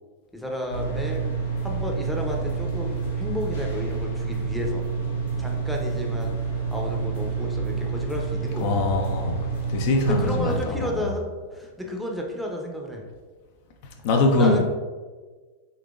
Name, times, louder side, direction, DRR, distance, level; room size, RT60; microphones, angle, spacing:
voice 1, 0.3-1.2 1.6-4.8 5.4-8.9 10.1-11.2 11.5-13.0 14.4-14.6, left 1 dB, ahead, 0 dB, 0.7 m, -32 dB
sound 1, 0.7-10.6, right 5 dB, 80° left, 0.8 m, -28 dB
voice 2, 8.6-9.4 9.7-11.1 14.0-14.6, left 3 dB, 60° left, 3 dB, 0.4 m, -22 dB
3.8 x 2.8 x 2.4 m, 1.4 s
hypercardioid pair, 100°, 0 cm